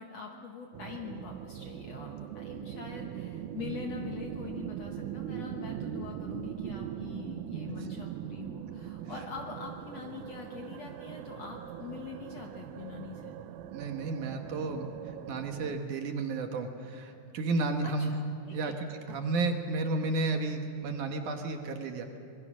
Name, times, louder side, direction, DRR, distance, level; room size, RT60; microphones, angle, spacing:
voice 1, 0.0-13.4 17.8-18.2 18.4-19.2, left 5 dB, 65° left, 2 dB, 1.7 m, -44 dB
sound 1, 0.7-15.8, right 10 dB, 80° right, 1.8 m, -41 dB
voice 2, 13.7-14.9 15.3-18.1 18.5-22.2, right 3 dB, 65° right, 4 dB, 2.5 m, -32 dB
26.0 x 20.5 x 6.2 m, 2.4 s
omnidirectional pair, 4.3 m